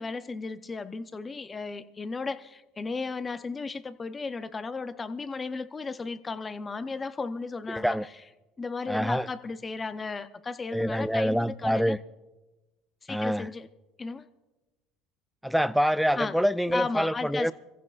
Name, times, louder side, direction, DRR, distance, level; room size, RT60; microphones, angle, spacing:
voice 1, 0.0-8.0 8.6-12.0 13.0-13.7 14.0-14.3 16.2-16.4 16.7-17.5, left 4 dB, 25° left, 0.8 m, -35 dB
voice 2, 7.7-8.1 8.9-9.3 10.7-12.0 13.1-13.5 15.4-17.5, equal, ahead, 0.4 m, -26 dB
25.5 x 15.0 x 2.5 m
supercardioid pair, 105°, 0 cm